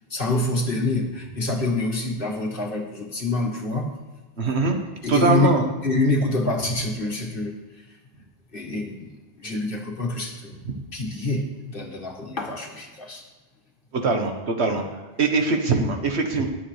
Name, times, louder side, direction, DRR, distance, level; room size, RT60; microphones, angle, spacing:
voice 1, 0.1-3.9 5.0-5.5 5.8-7.6 8.5-9.1 9.4-10.6 10.9-13.2, left 2 dB, 55° left, 0 dB, 1.9 m, -26 dB
voice 2, 4.4-4.8 5.1-5.6 13.9-14.8 15.2-16.5, right 3 dB, 75° right, 4 dB, 1.6 m, -22 dB
21.0 x 7.3 x 3.3 m, 1.2 s
omnidirectional pair, 1.1 m